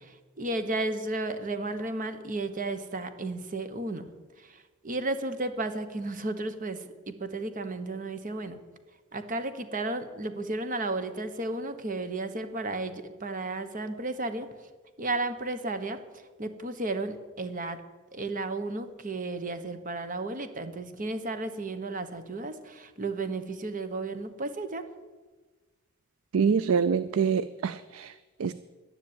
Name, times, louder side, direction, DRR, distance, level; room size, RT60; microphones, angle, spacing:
voice 1, 0.4-4.1 4.4-8.6 9.1-14.5 15.0-16.0 16.4-17.8 18.1-24.8, right 2 dB, 40° right, 10 dB, 1.2 m, -33 dB
voice 2, 26.3-28.5, right 6 dB, 80° right, 15 dB, 0.4 m, -26 dB
11.5 x 10.5 x 8.8 m, 1.3 s
head